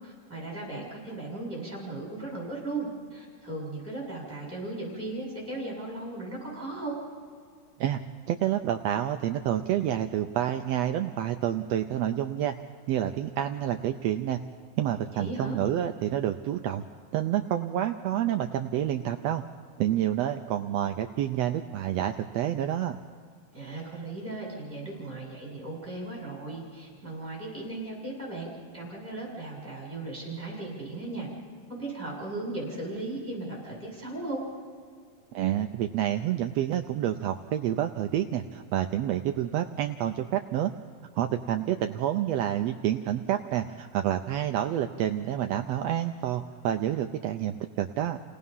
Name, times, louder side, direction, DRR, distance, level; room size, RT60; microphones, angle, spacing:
voice 1, 0.0-6.9 15.1-15.6 23.5-28.5 28.7-31.3 31.7-34.4, right 2 dB, 5° right, -4 dB, 7.1 m, -37 dB
voice 2, 8.3-12.5 12.9-14.4 14.8-16.8 17.1-19.4 19.8-23.0 35.3-40.7 41.2-48.2, right 11 dB, 80° right, 6 dB, 1.4 m, -28 dB
30.0 x 18.5 x 5.5 m, 2.1 s
omnidirectional pair, 3.6 m